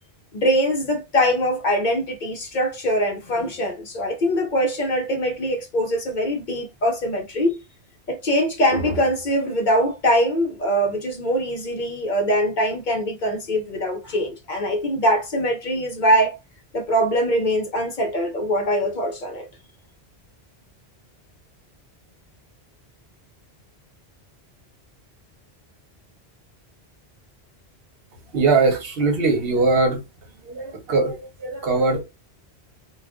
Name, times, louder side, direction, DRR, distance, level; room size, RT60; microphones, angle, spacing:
voice 1, 0.3-7.6 8.1-16.4 16.7-19.5, equal, 55° left, 0.7 m, -22 dB
voice 2, 28.3-30.0 30.4-32.0, right 3 dB, 65° right, 1.0 m, -21 dB
2.4 x 2.3 x 3.4 m
omnidirectional pair, 1.1 m